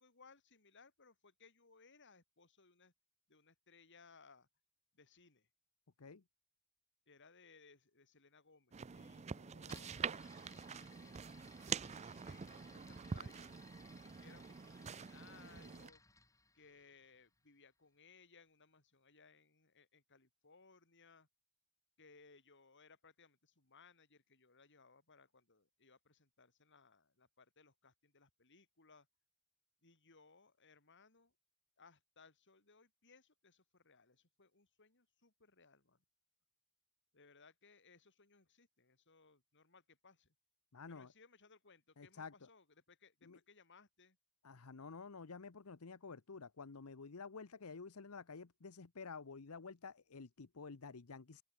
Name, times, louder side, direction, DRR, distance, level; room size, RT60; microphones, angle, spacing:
voice 1, 0.0-2.9 3.3-4.5 4.9-5.5 7.1-11.5 11.9-13.6 14.0-16.0 16.5-21.3 22.0-29.1 29.8-31.3 31.8-36.0 37.1-40.3 40.9-44.2, left 4 dB, 55° left, 4.2 m, -65 dB
sound 1, 8.7-15.9, right 6 dB, 30° right, 0.4 m, -46 dB
sound 2, 9.6-17.5, left 3 dB, 15° left, 3.1 m, -64 dB
voice 2, 40.7-41.1 42.0-42.5 43.2-43.4 44.4-51.4, left 4 dB, 75° left, 0.9 m, -51 dB
open air
head